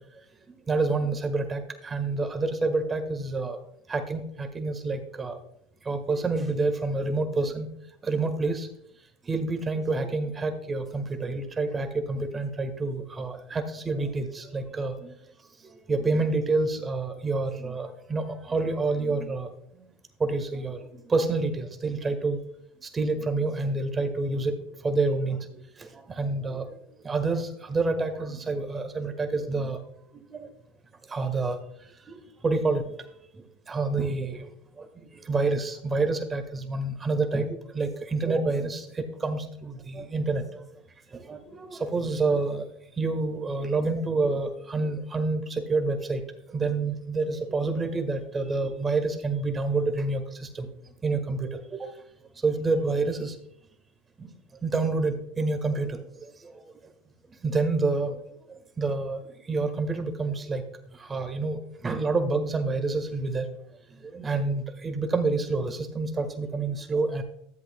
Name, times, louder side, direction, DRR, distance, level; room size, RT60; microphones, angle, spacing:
voice 1, 0.5-3.6 3.9-5.4 5.8-7.7 8.0-8.7 9.3-15.1 15.6-19.5 19.7-19.9 20.2-22.4 22.8-24.5 24.8-26.7 27.0-29.8 30.1-30.5 31.1-31.6 32.1-32.9 33.7-34.5 34.8-40.6 41.1-42.6 43.0-46.2 46.5-50.7 51.0-51.9 52.4-53.3 54.2-54.3 54.6-56.6 57.4-58.2 58.5-60.6 60.9-63.5 64.0-67.2, right 3 dB, 20° right, 7 dB, 1.4 m, -28 dB
13.5 x 7.8 x 2.2 m, 0.72 s
hypercardioid pair, 100°, 0 cm